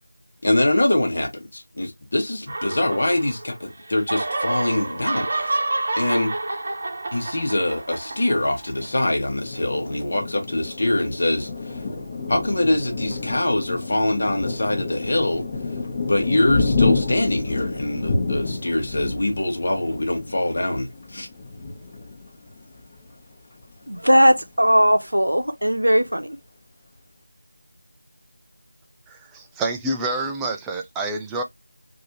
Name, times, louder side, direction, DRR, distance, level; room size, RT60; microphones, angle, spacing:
voice 1, 0.4-5.4 6.0-6.3 7.1-11.8 12.3-15.5 16.1-21.3, left 1 dB, 45° left, 1.2 m, -23 dB
sound 1, 2.5-3.6 3.9-8.9, right 2 dB, 35° right, 1.0 m, -28 dB
Thunder, 8.8-23.1 23.6-23.7 24.0-24.6, left 3 dB, 20° left, 1.1 m, -29 dB
voice 2, 23.9-26.4, equal, 85° right, 0.8 m, -18 dB
voice 3, 29.1-31.4, right 2 dB, 5° right, 0.3 m, -28 dB
3.2 x 2.7 x 2.8 m
figure-of-eight pair, 170°, 0 cm